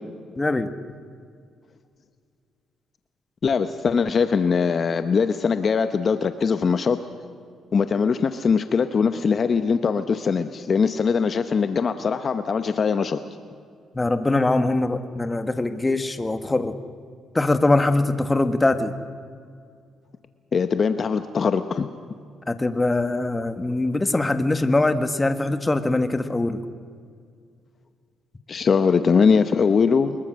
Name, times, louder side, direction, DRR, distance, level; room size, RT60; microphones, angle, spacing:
voice 1, 0.3-0.7 13.9-16.8 17.3-18.9 22.5-26.6, left 2 dB, 20° left, 9 dB, 1.5 m, -22 dB
voice 2, 3.4-7.0 7.7-13.2 20.5-21.9 28.5-30.2, left 5 dB, 45° left, 10 dB, 0.9 m, -21 dB
24.5 x 22.0 x 6.4 m, 2.2 s
cardioid pair, 90°, 0 cm